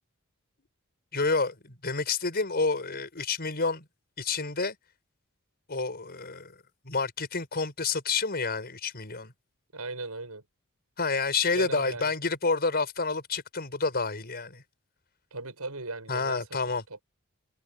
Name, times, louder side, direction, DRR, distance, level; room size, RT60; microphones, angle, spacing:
voice 1, 1.1-3.8 4.2-4.8 5.7-6.6 6.8-9.3 11.0-14.6 16.1-16.8, left 4 dB, 45° left, 5.8 m, -29 dB
voice 2, 9.7-10.4 11.5-12.1 15.3-16.4 16.9-17.0, right 3 dB, 85° right, 7.7 m, -37 dB
head